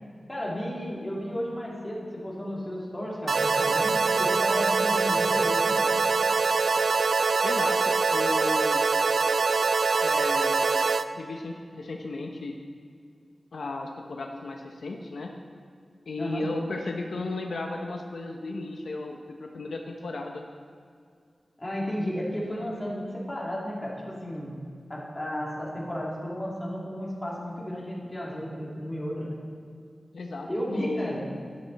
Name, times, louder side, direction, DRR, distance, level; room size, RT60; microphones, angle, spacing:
voice 1, 0.3-6.0 16.2-16.5 21.6-24.6 24.9-29.4 30.5-31.3, equal, 20° left, -5 dB, 2.9 m, -33 dB
sound 1, 3.3-11.1, right 4 dB, 70° right, 0.3 m, -24 dB
voice 2, 7.4-8.8 10.0-12.5 13.5-15.3 16.1-20.4 30.1-31.2, left 2 dB, 85° left, 2 dB, 0.8 m, -34 dB
12.0 x 11.0 x 4.2 m, 2.2 s
wide cardioid pair, 115°, 0 cm